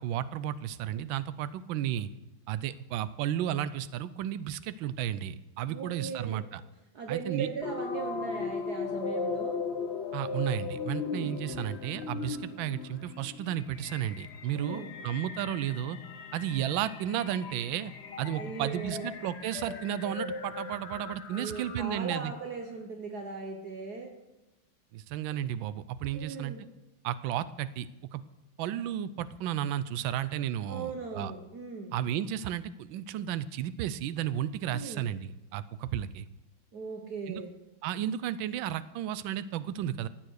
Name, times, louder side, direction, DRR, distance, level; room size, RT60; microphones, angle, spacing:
voice 1, 0.0-2.1 2.5-6.6 7.1-7.5 10.1-16.0 16.3-17.9 18.2-22.3 24.9-26.5 27.0-28.2 28.6-31.3 31.9-36.3 37.3-37.4 37.8-40.1, right 11 dB, 80° right, 14 dB, 1.4 m, -33 dB
voice 2, 5.7-6.5 6.9-9.6 14.5-14.9 18.4-19.1 21.3-24.1 26.1-26.6 30.7-31.9 34.7-35.1 36.7-37.5, right 4 dB, 55° right, 3 dB, 1.7 m, -38 dB
sound 1, 7.6-22.2, left 5 dB, 45° left, 0.9 m, -38 dB
15.0 x 9.0 x 6.4 m, 0.98 s
omnidirectional pair, 2.1 m